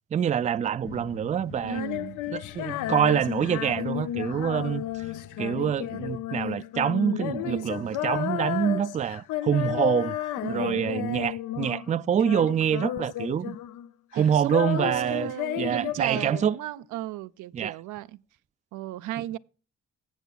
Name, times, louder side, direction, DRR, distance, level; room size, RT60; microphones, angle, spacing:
voice 1, 0.1-1.8 2.3-5.1 5.4-10.2 10.5-13.6 14.1-15.3 15.6-16.6 17.5-17.7, right 8 dB, 25° right, 0.3 m, -26 dB
sound 1, 0.8-6.2, left 10 dB, 45° left, 0.6 m, -45 dB
Female singing, 1.6-11.9 12.2-13.9 14.1-16.8, left 13 dB, 85° left, 0.6 m, -33 dB
voice 2, 1.6-2.2 7.5-7.9 10.4-10.8 14.1-18.2 18.7-19.4, right 14 dB, 80° right, 0.5 m, -35 dB
16.0 x 7.1 x 2.3 m
cardioid pair, 90°, 30 cm